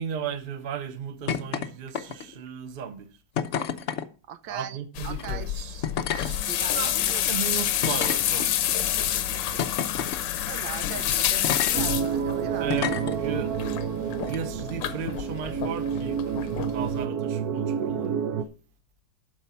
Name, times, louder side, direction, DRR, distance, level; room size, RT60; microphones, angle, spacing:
voice 1, 0.0-3.1 4.5-5.5 6.7-8.6 12.6-13.5 14.0-18.3, right 7 dB, 35° right, 0.9 m, -35 dB
sound 1, 1.3-1.7 1.9-2.4 3.4-4.1 5.1-5.3 5.8-6.3 7.0-7.1 7.8-8.7 9.6-10.2 11.4-11.7 12.7-13.2 14.2-14.4, left 7 dB, 55° left, 0.8 m, -29 dB
voice 2, 4.3-4.8 5.0-5.9 6.1-6.8 7.1-7.3 8.8-9.6 10.1-12.8, right 9 dB, 80° right, 1.4 m, -40 dB
sound 2, 5.0-17.1, left 11 dB, 75° left, 1.4 m, -29 dB
sound 3, 11.7-18.4, right 7 dB, 65° right, 1.1 m, -29 dB
11.5 x 4.7 x 5.8 m
omnidirectional pair, 2.0 m